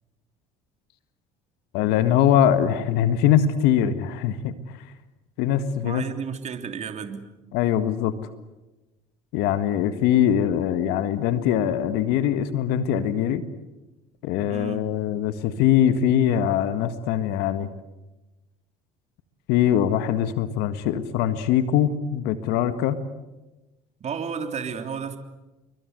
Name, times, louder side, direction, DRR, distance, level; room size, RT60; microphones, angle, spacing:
voice 1, 1.7-4.8 5.4-6.0 7.5-8.1 9.3-13.4 14.2-17.7 19.5-23.0, left 10 dB, 75° left, 11 dB, 1.7 m, -22 dB
voice 2, 5.8-7.2 14.5-14.9 24.0-25.2, right 6 dB, 40° right, 6 dB, 3.3 m, -32 dB
29.0 x 23.5 x 8.1 m, 1.1 s
supercardioid pair, 85°, 17 cm